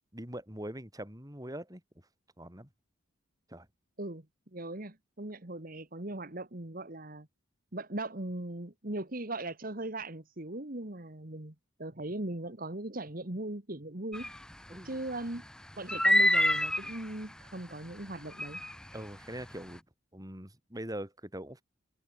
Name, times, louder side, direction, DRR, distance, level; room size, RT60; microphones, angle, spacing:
voice 1, 0.1-1.8 2.4-2.7 3.5-3.7 14.7-15.0 18.9-19.8 20.1-21.6, right 1 dB, 20° right, 5.7 m, -42 dB
voice 2, 4.5-7.3 7.7-11.5 11.8-14.3 14.8-15.4 15.8-18.6, right 2 dB, 45° right, 1.9 m, -39 dB
Nighttime seabirds and cicadas, 14.1-14.4 15.9-17.0 18.4-18.7, left 1 dB, 5° left, 0.4 m, -26 dB
head